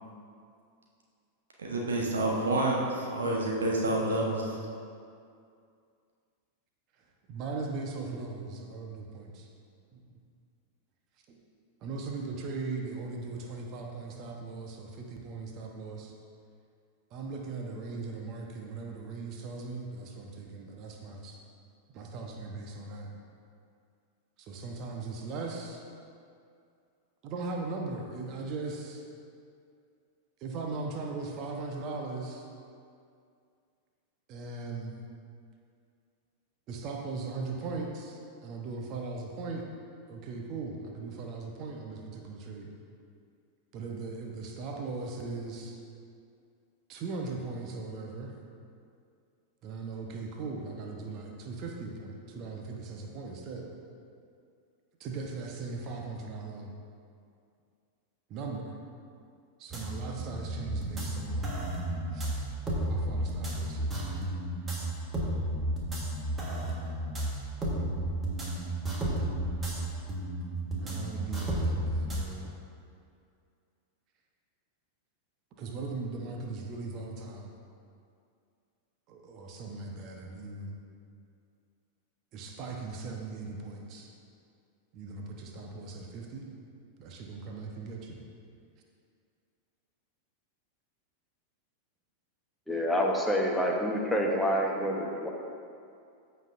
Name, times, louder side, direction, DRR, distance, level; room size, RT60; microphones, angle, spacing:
voice 1, 1.6-4.6, right 2 dB, 65° right, -2 dB, 1.1 m, -28 dB
voice 2, 7.3-9.5 9.9-10.1 11.3-11.4 11.8-16.1 17.1-21.4 21.9-23.1 24.4-25.8 27.2-29.0 30.4-32.5 34.3-34.9 36.7-39.7 40.1-42.7 43.7-45.8 46.9-48.3 49.6-53.7 55.0-56.7 58.3-58.8 59.6-61.6 62.1-62.3 62.9-64.1 70.8-72.5 75.6-77.5 79.1-80.8 82.3-84.1 84.9-86.5 87.0-88.2, right 3 dB, 40° right, 1 dB, 1.0 m, -39 dB
sound 1, 59.7-72.2, right 1 dB, 20° right, 1.5 m, -32 dB
voice 3, 92.7-95.3, equal, 5° left, -1 dB, 1.1 m, -27 dB
14.5 x 5.6 x 2.6 m, 2.4 s
figure-of-eight pair, 90°, 0 cm